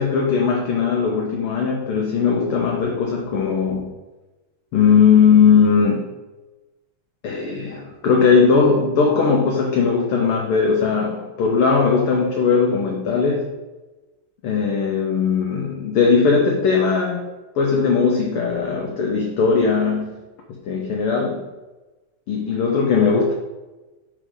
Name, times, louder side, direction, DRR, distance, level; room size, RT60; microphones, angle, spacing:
voice 1, 0.0-3.9 4.7-6.1 7.2-13.5 14.4-17.3 17.5-20.2 20.5-21.5 22.3-23.3, left 5 dB, 75° left, 0 dB, 1.2 m, -19 dB
6.2 x 6.2 x 3.9 m, 1.1 s
omnidirectional pair, 3.4 m